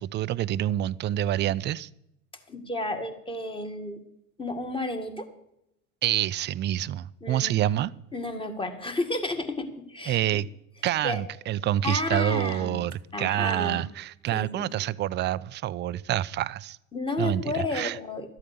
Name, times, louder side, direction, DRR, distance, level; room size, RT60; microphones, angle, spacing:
voice 1, 0.0-1.9 6.0-7.9 10.1-10.5 10.8-16.8 17.2-18.0, right 12 dB, 25° right, 18 dB, 0.4 m, -27 dB
voice 2, 2.5-4.0 4.4-5.3 7.2-7.9 8.1-10.4 11.0-11.2 11.8-12.9 13.1-13.8 14.3-14.7 16.9-18.4, left 2 dB, 10° left, 6 dB, 1.9 m, -32 dB
13.0 x 8.5 x 6.8 m, 0.80 s
hypercardioid pair, 90°, 41 cm